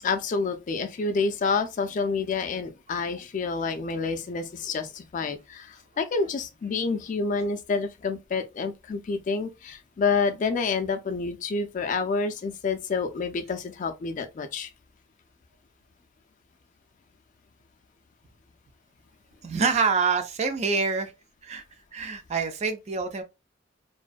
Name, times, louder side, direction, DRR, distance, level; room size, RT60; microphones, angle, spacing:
voice 1, 0.0-14.7, left 4 dB, 40° left, 0.3 m, -28 dB
voice 2, 19.4-21.1 21.4-21.6 21.9-23.2, right 5 dB, 35° right, 0.4 m, -26 dB
2.5 x 2.2 x 2.3 m
head